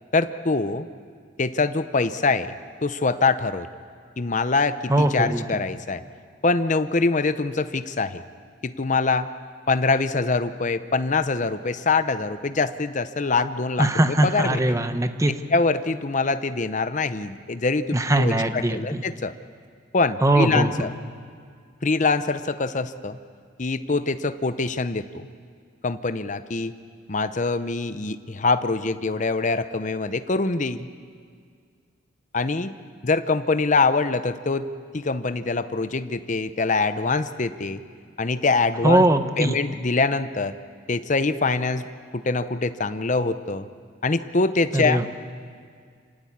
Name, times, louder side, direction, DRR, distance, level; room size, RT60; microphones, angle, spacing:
voice 1, 0.1-0.9 1.4-2.5 2.8-3.7 4.2-6.0 6.4-8.2 8.6-9.3 9.7-14.8 15.5-19.3 19.9-20.9 21.8-23.2 23.6-25.3 25.8-26.7 27.1-30.9 32.3-32.7 33.0-34.7 34.9-37.8 38.2-39.1 39.4-40.6 40.9-41.9 42.1-43.7 44.0-45.0, left 3 dB, 40° left, 11 dB, 0.7 m, -24 dB
voice 2, 4.9-5.4 13.8-15.3 17.9-19.0 20.2-20.9 38.8-39.6 44.7-45.1, right 1 dB, 15° right, 8 dB, 0.9 m, -21 dB
25.5 x 17.5 x 8.8 m, 2.1 s
head